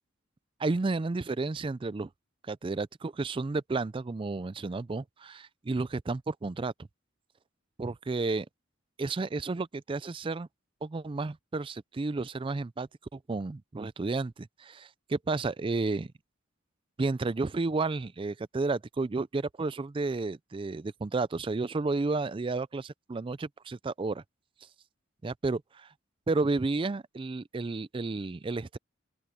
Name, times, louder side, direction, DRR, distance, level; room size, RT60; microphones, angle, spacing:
voice 1, 0.6-2.1 2.5-6.7 7.8-8.5 9.0-10.5 10.8-16.1 17.0-24.2 25.2-25.9 26.3-28.8, right 3 dB, 25° right, 0.4 m, -32 dB
open air
head